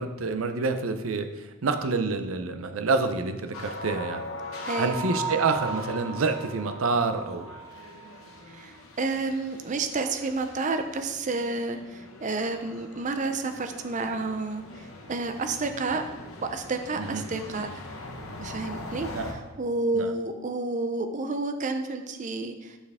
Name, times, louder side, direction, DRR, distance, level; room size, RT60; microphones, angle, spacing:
voice 1, 0.0-4.2 4.8-7.5 17.0-17.2 19.1-19.4 19.9-20.1, right 3 dB, 80° right, 8 dB, 0.6 m, -28 dB
sound 1, 3.5-19.3, right 1 dB, 85° left, 1.1 m, -39 dB
voice 2, 4.7-5.0 8.5-16.0 16.4-17.8 18.4-22.8, right 3 dB, 35° right, 7 dB, 0.5 m, -30 dB
7.2 x 6.6 x 3.5 m, 1.1 s
head